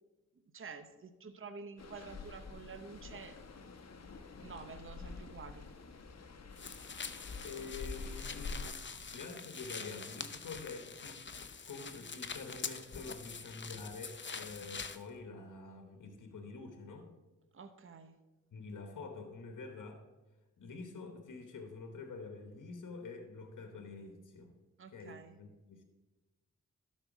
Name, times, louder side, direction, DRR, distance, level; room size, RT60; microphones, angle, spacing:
voice 1, 0.5-3.4 4.4-5.7 17.5-18.2 24.8-25.4, right 5 dB, 45° right, 9 dB, 0.8 m, -49 dB
sound 1, 1.8-8.7, left 4 dB, 60° left, 0.9 m, -47 dB
sound 2, 6.6-15.0, left 5 dB, 40° left, 0.7 m, -45 dB
voice 2, 7.4-8.7 9.1-11.2 11.6-17.1 18.5-20.0 20.6-24.5 24.9-25.8, left 4 dB, 80° left, 5 dB, 1.1 m, -47 dB
12.0 x 4.3 x 6.0 m, 1.2 s
cardioid pair, 45°, 30 cm